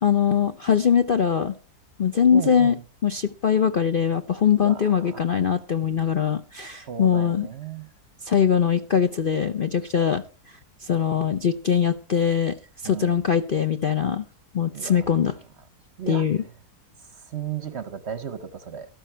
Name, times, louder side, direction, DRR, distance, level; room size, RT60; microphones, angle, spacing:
voice 1, 0.0-1.6 2.0-2.8 3.0-7.5 8.2-10.2 10.8-12.6 12.8-14.2 14.5-15.4 16.1-16.4, left 7 dB, 50° left, 0.6 m, -22 dB
voice 2, 2.3-2.8 4.6-4.8 5.1-5.2 6.7-7.9 12.8-13.2 14.7-15.0 16.0-16.3 17.1-18.9, right 8 dB, 50° right, 0.9 m, -34 dB
13.0 x 12.5 x 4.4 m
omnidirectional pair, 1.7 m